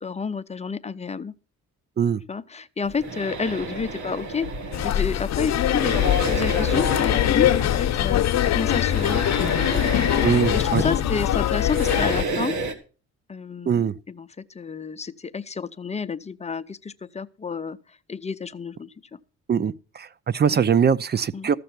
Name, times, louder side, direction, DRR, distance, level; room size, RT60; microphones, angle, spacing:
voice 1, 0.0-1.3 2.3-4.5 4.8-9.2 9.6-9.8 10.3-12.6 13.3-14.3 14.5-17.8 18.1-18.9 20.5-20.6 21.3-21.5, left 5 dB, 20° left, 0.6 m, -30 dB
sound 1, 2.8-12.7, right 3 dB, 75° right, 1.9 m, -32 dB
sound 2, 4.7-12.2, left 11 dB, 60° left, 0.8 m, -22 dB
voice 2, 10.2-10.8 13.7-13.9 19.5-21.6, right 7 dB, 35° right, 0.6 m, -22 dB
14.0 x 6.7 x 5.9 m
cardioid pair, 90°, 30 cm